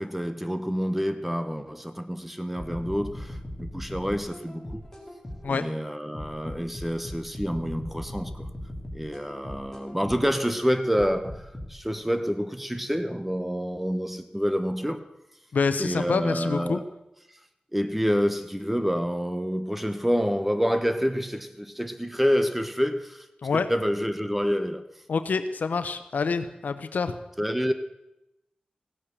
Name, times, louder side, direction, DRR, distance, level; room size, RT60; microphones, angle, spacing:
voice 1, 0.0-4.9 5.4-8.5 8.9-15.0 15.8-16.8 17.7-23.3 23.5-24.8 27.4-27.7, equal, 5° right, 1.1 m, -28 dB
sound 1, 2.6-5.6 6.1-10.4 10.9-11.7, left 1 dB, 10° left, 3.3 m, -38 dB
voice 2, 15.5-16.8 23.4-23.7 25.1-27.2, left 5 dB, 90° left, 0.8 m, -27 dB
16.0 x 8.8 x 6.8 m
wide cardioid pair, 80°, 3 cm